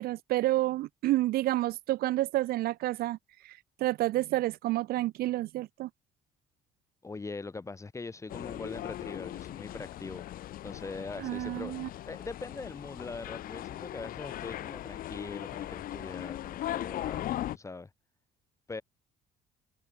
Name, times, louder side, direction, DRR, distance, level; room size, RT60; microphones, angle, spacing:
voice 1, 0.0-3.2 3.4-5.9 11.2-11.9, right 16 dB, 65° right, 0.4 m, -29 dB
voice 2, 7.0-10.3 10.6-17.9 18.7-18.8, left 3 dB, 15° left, 1.2 m, -42 dB
sound 1, 8.3-17.6, left 13 dB, 60° left, 0.6 m, -39 dB
cardioid pair, 110°, 17 cm